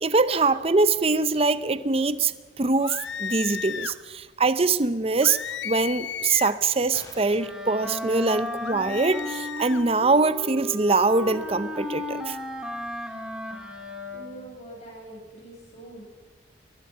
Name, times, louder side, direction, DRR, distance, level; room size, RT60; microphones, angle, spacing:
voice 1, 0.0-5.4 5.6-12.4, right 3 dB, 30° right, 14 dB, 0.7 m, -23 dB
sound 1, 2.8-4.0 5.2-6.6 8.6-9.8, left 8 dB, 70° left, 0.7 m, -34 dB
sound 2, 6.9-7.7, left 2 dB, 20° left, 3.0 m, -47 dB
Wind instrument woodwind instrument, 7.4-14.5, left 1 dB, 5° right, 2.7 m, -35 dB
voice 2, 14.1-16.0, right 1 dB, 35° left, -2 dB, 7.8 m, -44 dB
22.0 x 20.5 x 5.7 m, 1.4 s
head